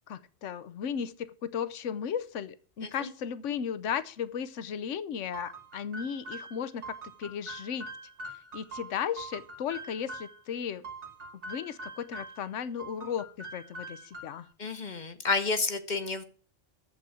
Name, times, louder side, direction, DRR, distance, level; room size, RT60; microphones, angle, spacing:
voice 1, 0.1-7.9 8.5-10.9 11.5-14.5, left 8 dB, 70° left, 15 dB, 1.1 m, -35 dB
sound 1, 5.3-10.4 10.8-12.5 12.8-14.5, right 2 dB, 60° right, 2.0 m, -44 dB
voice 2, 14.6-16.2, left 4 dB, 40° left, 9 dB, 1.1 m, -30 dB
8.5 x 7.7 x 8.4 m, 0.41 s
omnidirectional pair, 1.3 m